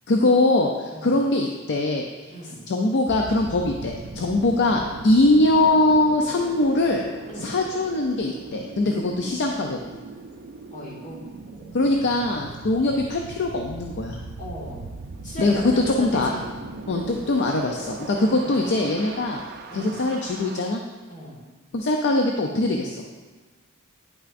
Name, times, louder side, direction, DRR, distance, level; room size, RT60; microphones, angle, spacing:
voice 1, 0.1-2.1 2.7-7.0 7.4-9.8 11.7-14.2 15.4-15.6 15.9-16.3 16.9-19.4 19.7-20.8 21.7-23.0, left 2 dB, 55° left, 2 dB, 0.5 m, -22 dB
voice 2, 2.3-2.6 7.3-7.5 10.7-11.8 12.1-12.2 12.5-12.6 14.4-14.9 15.2-16.5 18.3-18.6 19.7-20.0 21.1-21.4, equal, 35° left, -5 dB, 1.9 m, -37 dB
sound 1, 3.1-20.6, right 3 dB, 50° right, 0.4 m, -39 dB
9.6 x 5.7 x 2.5 m, 1.4 s
head